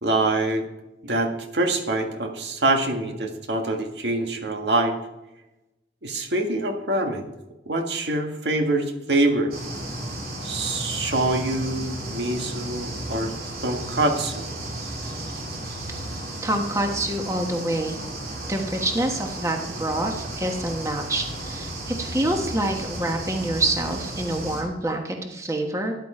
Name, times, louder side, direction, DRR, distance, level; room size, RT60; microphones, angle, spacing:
voice 1, 0.0-0.7 1.0-5.0 6.0-7.3 7.7-9.5 10.4-13.3 13.6-14.4, right 2 dB, 80° right, 4 dB, 1.8 m, -25 dB
sound 1, 9.5-24.6, right 1 dB, 55° right, 3.3 m, -34 dB
voice 2, 16.4-18.0 18.5-25.9, right 1 dB, 15° right, 3 dB, 1.3 m, -26 dB
14.0 x 10.5 x 4.4 m, 0.97 s
head